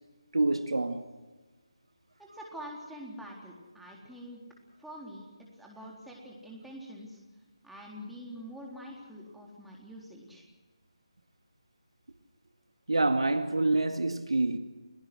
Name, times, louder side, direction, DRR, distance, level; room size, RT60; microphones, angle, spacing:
voice 1, 0.3-1.0 12.9-14.6, right 2 dB, 70° right, 2.0 m, -26 dB
voice 2, 2.2-4.4 4.8-7.2 7.6-10.4, equal, ahead, 3.9 m, -45 dB
30.0 x 18.5 x 6.3 m
figure-of-eight pair, 155°, 3 cm